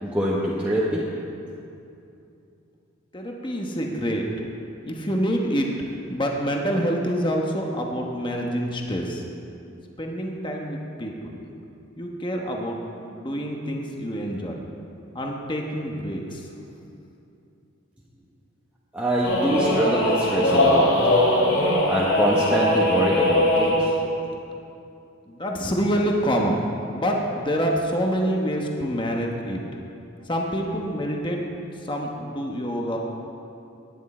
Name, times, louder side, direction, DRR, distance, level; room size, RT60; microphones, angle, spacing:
voice 1, 0.0-1.0 18.9-21.0 21.8-23.9, right 1 dB, 5° right, -7 dB, 1.1 m, -24 dB
voice 2, 3.1-4.2 4.8-5.7 6.1-9.2 10.0-11.4 12.0-12.8 13.1-14.6 15.1-16.5 25.3-29.6 30.3-31.4 31.8-33.0, equal, 25° left, 0 dB, 1.1 m, -26 dB
sound 1, 19.2-23.9, left 1 dB, 55° left, 2.9 m, -20 dB
18.5 x 10.0 x 4.3 m, 2.7 s
head